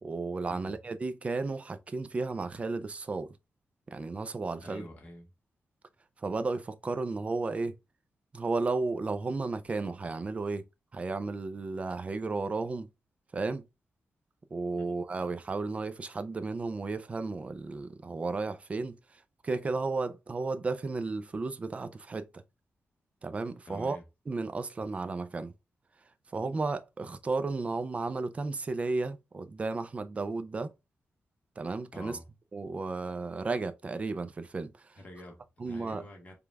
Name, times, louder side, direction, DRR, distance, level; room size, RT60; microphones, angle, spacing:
voice 1, 0.0-3.3 3.9-4.9 6.2-7.8 8.3-10.6 10.9-12.9 13.3-13.7 14.5-22.4 23.2-24.0 24.3-25.5 26.3-30.7 31.6-32.2 32.5-35.0 35.6-36.0, right 3 dB, 25° right, 0.4 m, -33 dB
voice 2, 4.6-5.3 14.8-14.9 23.7-24.0 31.9-32.2 35.0-36.3, left 1 dB, 30° left, 1.2 m, -47 dB
5.1 x 2.3 x 3.3 m
wide cardioid pair, 175°, 5 cm